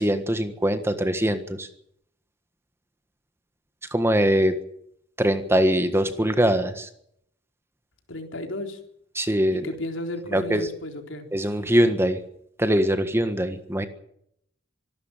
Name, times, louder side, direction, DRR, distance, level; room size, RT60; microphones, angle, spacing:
voice 1, 0.0-1.7 3.9-4.6 5.2-6.9 9.1-9.7 10.3-10.7 11.3-12.2 12.6-13.9, equal, 15° right, 9 dB, 1.5 m, -22 dB
voice 2, 8.1-8.8 9.5-11.3, left 1 dB, 70° left, 5 dB, 3.9 m, -34 dB
25.5 x 12.5 x 9.0 m, 0.72 s
head